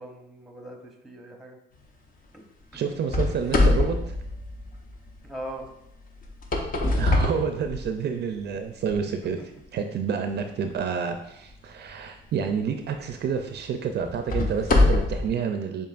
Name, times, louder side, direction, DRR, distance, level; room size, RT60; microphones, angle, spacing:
voice 1, 0.0-1.6 2.3-2.4 2.7-2.9 5.2-5.6 9.2-9.3, right 1 dB, ahead, 2 dB, 0.8 m, -40 dB
voice 2, 2.7-4.1 7.0-9.4 9.7-15.9, right 6 dB, 55° right, 6 dB, 0.4 m, -29 dB
sound 1, 3.1-5.1 6.2-8.2 8.8-8.9 9.6-9.7 12.3-12.5 13.1-13.2 14.0-15.3, left 2 dB, 45° left, 0.8 m, -23 dB
6.9 x 2.8 x 2.4 m, 0.80 s
cardioid pair, 90°, 20 cm